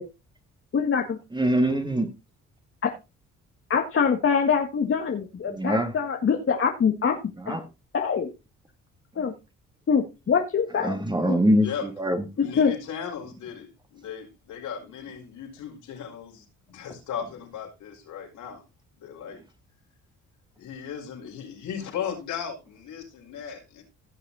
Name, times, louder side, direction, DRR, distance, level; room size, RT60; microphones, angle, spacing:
voice 1, 0.7-1.2 2.8-2.9 3.7-7.2 7.5-7.6 7.9-8.3 9.2-9.3 9.9-11.0 11.3-11.4 12.4-12.7, left 6 dB, 45° left, 1.8 m, -24 dB
voice 2, 1.3-2.1 5.5-5.9 7.4-7.6 10.8-12.2, equal, 15° right, 2.3 m, -23 dB
voice 3, 12.4-18.6 19.0-19.4 20.6-23.8, left 8 dB, 80° left, 5.2 m, -36 dB
16.5 x 6.5 x 4.2 m
cardioid pair, 90°, 30 cm